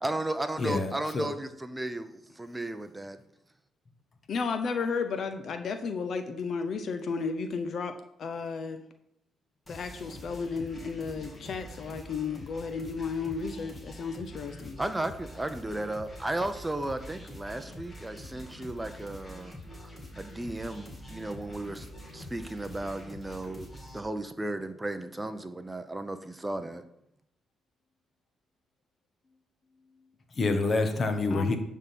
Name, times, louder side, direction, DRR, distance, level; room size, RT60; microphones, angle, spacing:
voice 1, 0.0-3.2 14.8-19.5 19.8-19.9 20.2-21.9 22.1-23.7 23.9-26.8, right 1 dB, 15° right, 9 dB, 0.6 m, -34 dB
voice 2, 0.6-1.3 30.3-31.6, left 3 dB, 40° left, 6 dB, 1.2 m, -27 dB
voice 3, 4.3-8.8 9.7-14.8 31.3-31.6, left 5 dB, 60° left, 8 dB, 0.6 m, -33 dB
sound 1, 9.7-24.0, equal, 20° left, 2.1 m, -45 dB
10.5 x 3.7 x 6.0 m, 0.77 s
cardioid pair, 90°, 0 cm